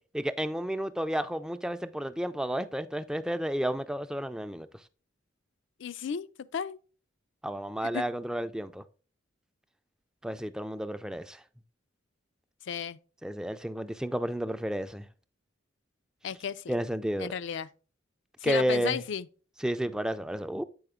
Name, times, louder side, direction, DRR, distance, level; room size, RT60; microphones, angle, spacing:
voice 1, 0.1-4.7 7.4-8.8 10.2-11.4 13.2-15.1 16.7-17.3 18.4-19.0 19.6-20.6, equal, 5° right, 0.3 m, -31 dB
voice 2, 5.8-6.8 7.9-8.0 12.6-13.0 16.2-16.6 17.2-17.7 18.4-19.3, left 7 dB, 65° left, 0.4 m, -34 dB
7.9 x 4.9 x 3.6 m
head